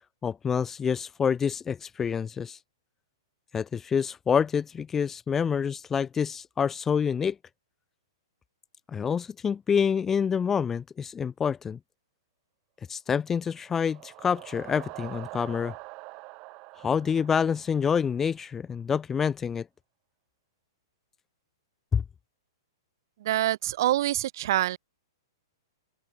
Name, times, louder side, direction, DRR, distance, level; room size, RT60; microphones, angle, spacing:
voice 1, 0.2-2.6 3.5-7.4 8.9-11.8 12.9-15.7 16.8-19.7 21.9-22.0, left 7 dB, 10° left, 0.6 m, -27 dB
sound 1, 13.5-18.4, right 25 dB, 30° right, 6.8 m, -45 dB
voice 2, 23.2-24.8, right 14 dB, 55° right, 3.1 m, -25 dB
open air
hypercardioid pair, 155°, 2 cm